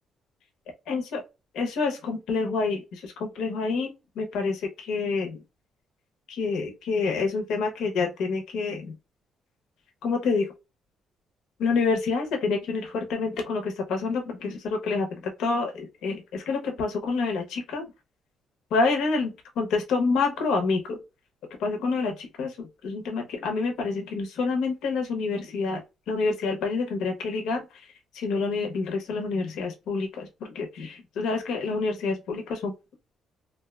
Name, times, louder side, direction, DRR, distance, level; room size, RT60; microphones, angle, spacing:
voice 1, 0.9-1.2 1.5-5.4 6.3-8.9 10.0-10.5 11.6-17.9 18.7-21.0 21.6-25.8 26.1-27.6 28.1-32.7, left 4 dB, 85° left, 0.7 m, -28 dB
2.6 x 2.1 x 2.2 m
cardioid pair, 90°, 0 cm